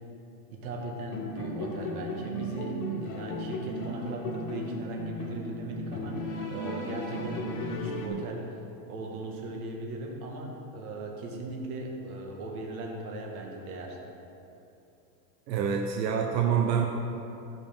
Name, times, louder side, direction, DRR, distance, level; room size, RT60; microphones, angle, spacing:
voice 1, 0.5-8.4 8.9-14.0, right 2 dB, 60° right, 0 dB, 1.9 m, -38 dB
sound 1, 1.1-8.1, equal, 60° left, 1.5 m, -35 dB
voice 2, 15.5-16.9, right 7 dB, 90° right, 2 dB, 1.0 m, -26 dB
16.5 x 5.7 x 3.7 m, 2.8 s
supercardioid pair, 175°, 49 cm